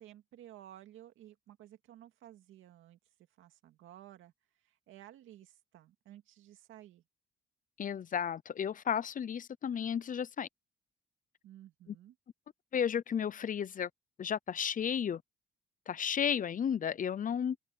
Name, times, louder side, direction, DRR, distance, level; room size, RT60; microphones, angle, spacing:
voice 1, 0.0-3.0 3.4-4.3 4.6-7.0 11.4-12.2, right 12 dB, 85° right, 2.2 m, -54 dB
voice 2, 7.8-10.5 12.7-13.9 14.2-15.2 15.9-17.6, left 8 dB, 40° left, 0.6 m, -33 dB
open air
cardioid pair, 90°, 20 cm